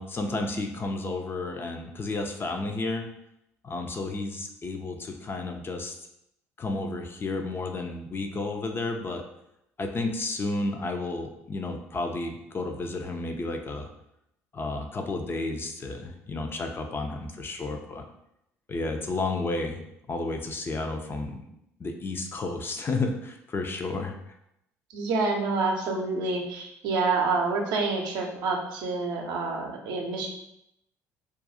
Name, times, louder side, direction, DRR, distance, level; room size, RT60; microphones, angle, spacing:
voice 1, 0.0-3.0 3.6-5.9 6.6-9.2 9.8-13.9 14.5-18.0 18.7-19.8 20.1-21.5 21.8-24.2, left 2 dB, 30° left, 4 dB, 0.4 m, -32 dB
voice 2, 24.9-30.3, right 3 dB, 60° right, 1 dB, 0.6 m, -27 dB
2.4 x 2.3 x 4.0 m, 0.80 s
figure-of-eight pair, 55°, 8 cm